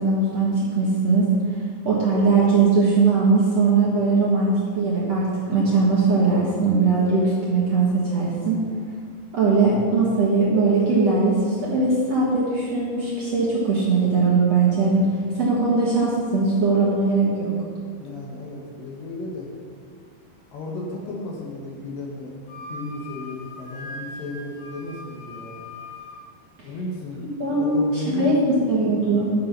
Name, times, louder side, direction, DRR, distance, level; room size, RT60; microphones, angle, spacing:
voice 1, 0.0-1.3 1.8-8.6 9.3-15.0 15.4-17.5 27.4-29.3, right 3 dB, 55° right, -6 dB, 2.0 m, -20 dB
voice 2, 18.0-19.5 20.5-25.6 26.6-27.2 27.5-28.8, left 2 dB, 65° left, -1 dB, 2.7 m, -34 dB
Wind instrument woodwind instrument, 22.5-26.2, left 2 dB, 80° left, 4.4 m, -40 dB
11.5 x 6.7 x 5.5 m, 2.2 s
omnidirectional pair, 4.6 m